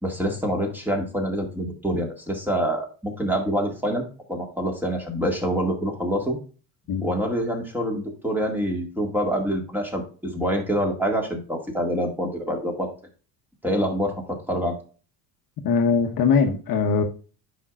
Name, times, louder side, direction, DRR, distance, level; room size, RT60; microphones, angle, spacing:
voice 1, 0.0-4.0 4.3-6.4 7.0-12.9 13.6-14.8, equal, 5° right, 1.9 m, -26 dB
voice 2, 15.6-17.0, left 5 dB, 50° left, 1.2 m, -21 dB
9.9 x 5.7 x 2.4 m
cardioid pair, 130°, 44 cm